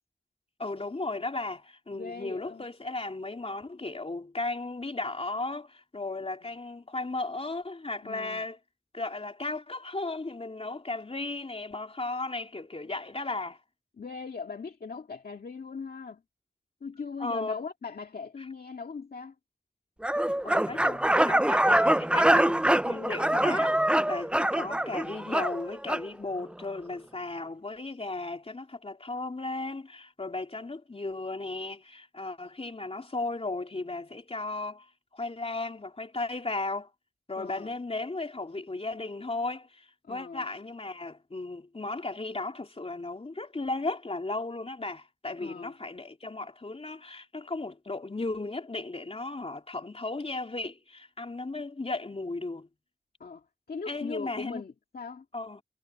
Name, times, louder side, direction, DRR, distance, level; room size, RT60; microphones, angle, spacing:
voice 1, 0.6-8.6 8.9-13.6 17.2-17.6 20.4-23.7 24.1-34.9 35.1-36.9 37.3-52.7 53.9-54.6 55.3-55.6, left 2 dB, 40° left, 3.3 m, -35 dB
voice 2, 1.9-2.6 8.0-8.4 14.0-16.2 16.8-19.4 37.4-37.7 40.0-40.5 45.4-45.7 53.2-55.3, left 5 dB, 80° left, 2.0 m, -40 dB
sound 1, 20.0-26.1, right 1 dB, 5° right, 0.5 m, -24 dB
wide cardioid pair, 65°, 15 cm